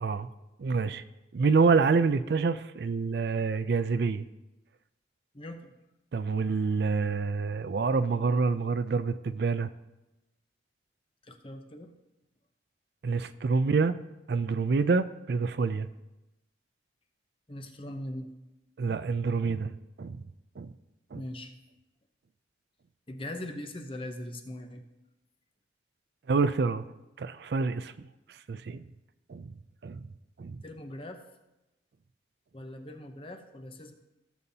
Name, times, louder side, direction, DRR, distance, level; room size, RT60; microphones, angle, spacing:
voice 1, 0.6-1.0 1.3-4.2 6.1-9.7 13.0-13.9 14.3-15.9 18.8-19.7 20.0-20.2 20.6-20.7 21.1-21.2 26.3-26.8 27.2-28.1 28.5-28.8 29.3-29.5 29.8-30.0 30.4-30.6, right 4 dB, 60° right, 12 dB, 0.4 m, -27 dB
voice 2, 5.3-5.7 11.2-11.9 17.5-18.3 21.1-21.5 23.1-24.8 30.6-31.2 32.5-33.9, left 1 dB, 30° left, 6 dB, 0.8 m, -40 dB
16.5 x 7.0 x 2.8 m, 0.98 s
head